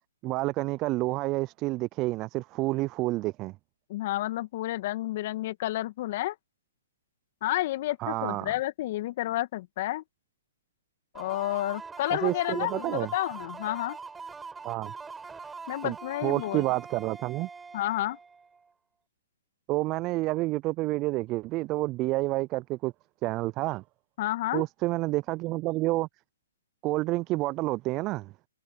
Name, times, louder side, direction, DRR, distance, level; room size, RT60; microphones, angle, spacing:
voice 1, 0.2-3.5 8.0-8.5 12.1-13.1 14.6-14.9 15.8-16.0 16.2-17.5 19.7-22.9 23.2-23.8 24.5-26.1 26.8-28.3, right 20 dB, 30° right, 0.4 m, -29 dB
voice 2, 3.9-6.4 7.4-10.0 11.1-14.0 15.7-16.6 17.7-18.2 24.2-24.6, left 16 dB, 45° left, 2.1 m, -30 dB
sound 1, 11.1-18.7, right 5 dB, 10° right, 7.2 m, -43 dB
hypercardioid pair, 130°, 0 cm